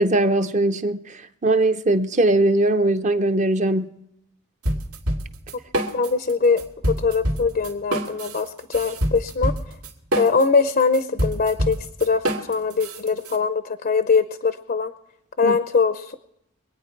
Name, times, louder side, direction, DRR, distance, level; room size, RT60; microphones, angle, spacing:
voice 1, 0.0-4.0 15.4-15.5, right 2 dB, 30° right, 0.7 m, -20 dB
sound 1, 4.6-6.3 6.6-13.4, right 1 dB, 80° right, 2.4 m, -26 dB
voice 2, 5.9-6.6 6.9-9.5 10.2-14.9 15.4-16.2, left 4 dB, 40° left, 0.6 m, -22 dB
24.0 x 9.2 x 4.5 m
head